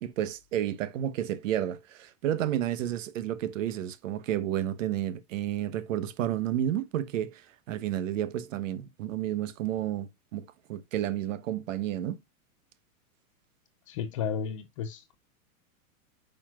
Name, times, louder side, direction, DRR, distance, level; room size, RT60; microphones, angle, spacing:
voice 1, 0.0-12.2, right 11 dB, 60° right, 1.1 m, -31 dB
voice 2, 13.9-15.2, left 7 dB, 25° left, 0.4 m, -33 dB
8.9 x 5.7 x 2.3 m
supercardioid pair, 165°, 43 cm